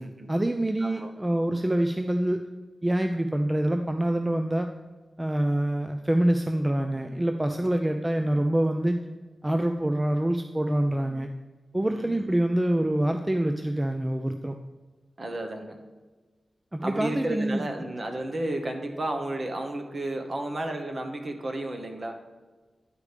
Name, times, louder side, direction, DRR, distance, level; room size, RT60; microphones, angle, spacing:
voice 1, 0.3-2.4 2.8-4.7 5.2-9.0 9.4-11.3 11.7-14.5 16.7-17.6, right 1 dB, 15° right, 6 dB, 0.4 m, -26 dB
voice 2, 0.8-1.1 11.9-12.3 15.2-15.8 16.8-22.1, right 1 dB, 40° right, 4 dB, 1.1 m, -32 dB
9.7 x 4.9 x 5.0 m, 1.3 s
wide cardioid pair, 130°, 0 cm